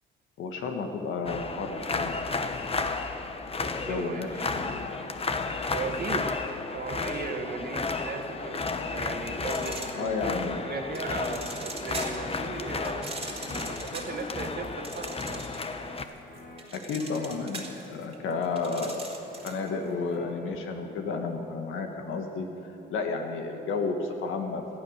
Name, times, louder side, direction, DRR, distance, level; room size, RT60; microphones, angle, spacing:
voice 1, 0.4-2.2 3.9-4.3 4.6-5.0 10.0-10.6 16.7-17.6 17.9-22.5 22.9-24.6, left 4 dB, 85° left, 4 dB, 1.7 m, -32 dB
sound 1, 1.3-16.0, left 4 dB, 30° left, 1.0 m, -33 dB
voice 2, 3.5-4.7 5.7-6.3 6.7-10.4 10.6-15.4 18.6-18.9, right 4 dB, 50° right, 5 dB, 1.7 m, -37 dB
sound 2, 4.3-23.6, left 2 dB, 50° left, 2.4 m, -48 dB
sound 3, 9.4-10.4 11.0-12.3 12.8-15.8 16.1-19.7, right 2 dB, 30° right, 2.1 m, -41 dB
18.0 x 11.5 x 6.6 m, 3.0 s
cardioid pair, 90°, 20 cm